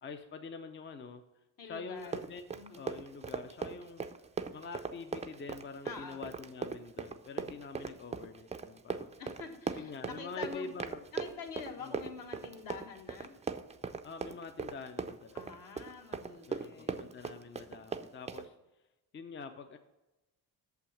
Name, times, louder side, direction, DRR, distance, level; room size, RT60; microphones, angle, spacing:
voice 1, 0.0-1.2 1.6-2.4 2.8-4.1 4.5-9.1 9.8-11.0 11.8-12.0 14.0-15.5 16.5-18.5 19.1-19.8, left 4 dB, 30° left, 7 dB, 0.5 m, -45 dB
voice 2, 1.6-3.0 5.8-6.3 9.2-10.7 11.1-13.4 15.3-17.1, left 5 dB, 65° left, 2 dB, 1.6 m, -47 dB
Run, 2.0-18.5, right 5 dB, 20° right, 0.4 m, -39 dB
6.9 x 5.8 x 7.1 m, 1.0 s
cardioid pair, 100°, 37 cm